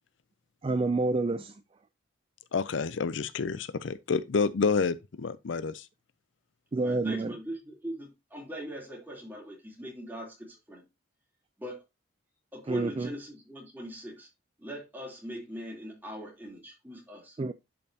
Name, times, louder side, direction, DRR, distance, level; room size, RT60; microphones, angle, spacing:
voice 1, 0.6-1.6 6.7-7.3 12.7-13.1 17.4-17.5, right 3 dB, 25° right, 0.3 m, -28 dB
voice 2, 2.5-5.9, left 5 dB, 65° left, 0.5 m, -29 dB
voice 3, 6.8-10.8 11.6-11.8 12.5-14.3 14.6-17.4, equal, 10° right, 3.2 m, -41 dB
11.0 x 5.3 x 2.8 m
head